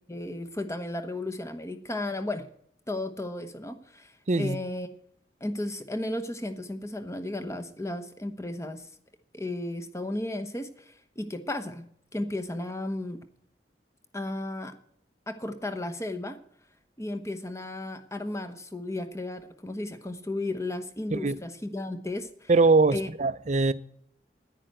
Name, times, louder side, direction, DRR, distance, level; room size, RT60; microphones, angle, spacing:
voice 1, 0.1-2.5 2.9-4.9 5.4-8.9 9.3-11.9 12.1-13.2 14.1-14.7 15.3-16.4 17.0-22.5 22.9-23.1, left 1 dB, 15° left, 1.0 m, -34 dB
voice 2, 4.3-4.6 21.1-21.4 22.5-23.7, right 3 dB, 40° right, 0.5 m, -22 dB
10.0 x 10.0 x 7.8 m
head